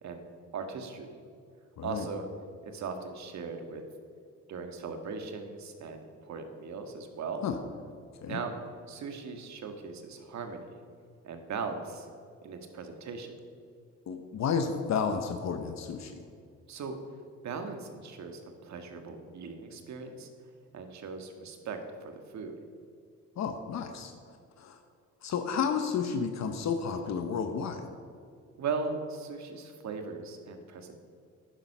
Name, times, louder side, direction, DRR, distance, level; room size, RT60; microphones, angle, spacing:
voice 1, 0.5-1.2 1.8-2.3 2.6-3.8 4.5-7.5 8.3-8.6 8.9-10.8 11.2-12.1 12.4-13.4 16.7-16.9 17.4-20.3 20.7-22.5 28.6-31.0, right 4 dB, 65° right, 6 dB, 1.7 m, -38 dB
voice 2, 14.1-16.1 23.4-24.1 24.6-24.8 25.2-27.8, left 6 dB, 65° left, 6 dB, 1.0 m, -31 dB
11.0 x 9.9 x 5.6 m, 2.3 s
cardioid pair, 90°, 30 cm